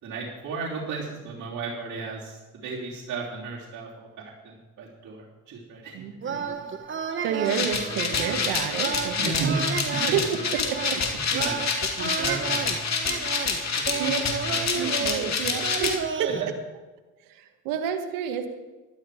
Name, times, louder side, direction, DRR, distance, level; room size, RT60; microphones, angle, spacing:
voice 1, 0.0-2.4 2.6-6.8 9.2-10.2 11.1-11.6 11.9-12.7 13.0-13.2 13.8-14.9 15.5-15.6 16.4-16.5, right 4 dB, 60° right, -7 dB, 3.4 m, -34 dB
voice 2, 5.9-6.5 7.2-9.6 10.1-11.0 14.0-14.3 14.8-16.5 17.2-18.5, right 8 dB, 90° right, 7 dB, 1.4 m, -30 dB
sound 1, 6.2-16.4, right 6 dB, 35° right, 1.3 m, -32 dB
sound 2, 7.4-16.0, left 5 dB, 50° left, 2.5 m, -28 dB
13.0 x 12.0 x 5.0 m, 1.2 s
supercardioid pair, 70°, 33 cm